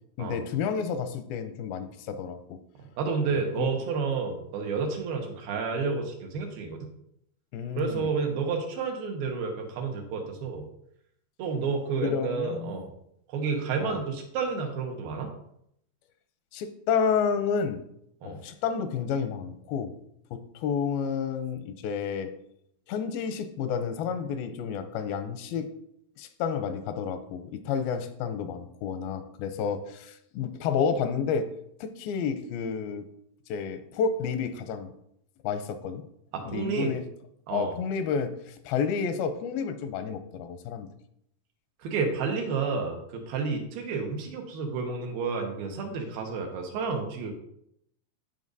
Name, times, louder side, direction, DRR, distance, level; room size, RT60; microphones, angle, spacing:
voice 1, 0.2-2.6 3.6-3.7 7.5-8.1 12.0-12.9 13.8-14.0 16.5-17.8 18.2-20.0 20.3-22.3 22.9-25.7 26.2-31.5 31.8-33.1 33.5-34.9 35.4-36.0 36.5-37.0 37.5-40.9, left 6 dB, 85° left, 10 dB, 2.5 m, -30 dB
voice 2, 3.0-6.9 7.8-10.7 11.4-12.9 13.3-15.3 18.2-18.4 36.3-36.9 37.5-37.8 41.8-47.4, right 5 dB, 85° right, 2 dB, 3.0 m, -30 dB
15.0 x 5.3 x 2.7 m, 0.75 s
omnidirectional pair, 4.1 m